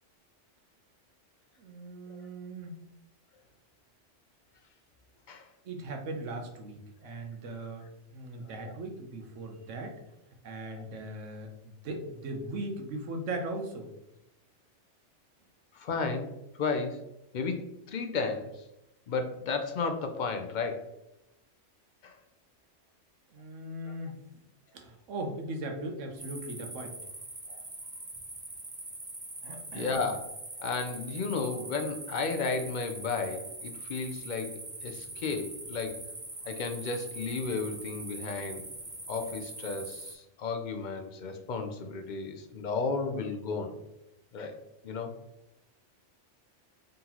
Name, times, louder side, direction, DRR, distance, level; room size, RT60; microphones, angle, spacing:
voice 1, 1.6-2.8 5.6-7.9 8.1-10.0 10.4-13.9 23.3-24.2 24.7-27.0 29.4-30.0, right 2 dB, 85° right, 3 dB, 1.1 m, -39 dB
voice 2, 15.7-17.0 17.3-18.6 19.1-21.0 22.0-22.2 23.9-24.0 27.5-27.6 29.7-30.2 30.6-36.0 36.4-38.7 39.1-43.8 44.3-44.6 44.8-45.1, left 4 dB, 60° left, 5 dB, 0.5 m, -33 dB
sound 1, 26.2-40.1, right 2 dB, 20° right, 0.6 m, -43 dB
3.9 x 3.8 x 2.9 m, 0.87 s
omnidirectional pair, 1.3 m